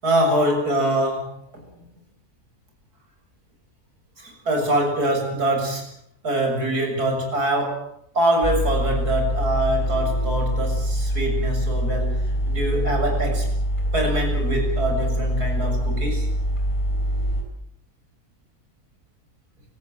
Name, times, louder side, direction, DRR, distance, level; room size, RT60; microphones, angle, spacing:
voice 1, 0.0-1.6 4.2-5.9 6.2-13.5 13.9-16.3, right 1 dB, 80° right, 2 dB, 7.9 m, -24 dB
sound 1, 8.4-17.4, equal, 20° left, 5.6 m, -24 dB
29.0 x 18.0 x 7.9 m, 0.65 s
omnidirectional pair, 1.6 m